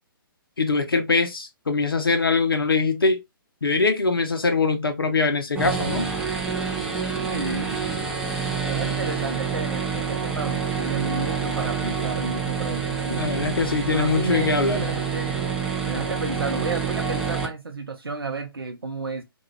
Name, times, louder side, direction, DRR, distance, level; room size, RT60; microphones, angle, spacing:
voice 1, 0.6-3.2 3.6-6.1 13.1-14.9, left 4 dB, 75° left, 0.5 m, -22 dB
sound 1, 5.5-17.5, right 6 dB, 5° right, 0.4 m, -27 dB
voice 2, 7.3-7.8 8.6-13.2 13.8-15.5 15.9-19.2, right 4 dB, 75° right, 0.5 m, -32 dB
2.3 x 2.2 x 3.0 m
figure-of-eight pair, 130°, 12 cm